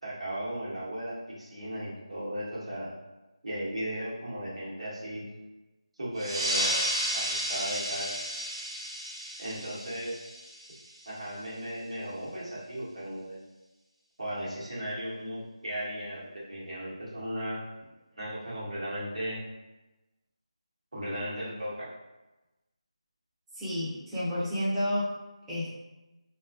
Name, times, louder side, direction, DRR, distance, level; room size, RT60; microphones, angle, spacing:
voice 1, 0.0-2.9 3.4-5.3 6.0-6.7 7.1-8.1 9.4-10.2 11.1-13.4 14.2-17.6 18.2-19.4 20.9-21.9, equal, 70° right, -7 dB, 1.0 m, -36 dB
sound 1, 6.2-11.2, equal, 55° right, 0.7 m, -32 dB
voice 2, 23.5-25.1 25.5-25.8, left 1 dB, 5° right, -11 dB, 0.5 m, -30 dB
2.5 x 2.3 x 2.3 m, 1.1 s
figure-of-eight pair, 165°, 3 cm